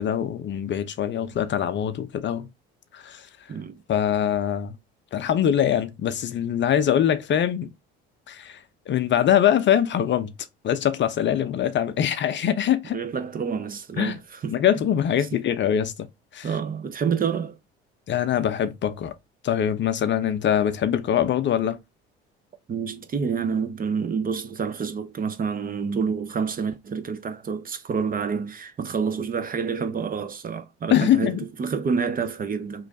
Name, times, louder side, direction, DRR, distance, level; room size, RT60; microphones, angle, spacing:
voice 1, 0.0-2.5 2.9-3.3 3.9-4.8 5.1-7.7 8.3-8.6 8.9-10.3 10.6-13.0 14.0-14.2 14.5-15.9 16.3-16.5 18.1-19.1 19.4-21.8 30.9-31.4, left 10 dB, 40° left, 0.5 m, -23 dB
voice 2, 12.9-14.6 16.4-17.6 22.7-32.9, right 6 dB, 30° right, 0.6 m, -28 dB
3.1 x 2.5 x 3.9 m
hypercardioid pair, 70°, 29 cm